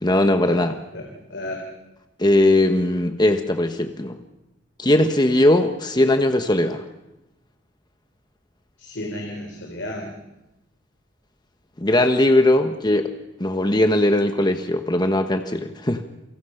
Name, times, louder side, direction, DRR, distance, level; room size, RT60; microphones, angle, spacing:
voice 1, 0.0-0.7 2.2-4.2 4.8-6.8 11.8-13.1 13.4-16.0, left 1 dB, 25° left, 7 dB, 1.2 m, -19 dB
voice 2, 0.9-1.6 8.8-10.2, left 1 dB, 65° left, 1 dB, 3.7 m, -33 dB
28.5 x 24.5 x 5.8 m, 0.93 s
head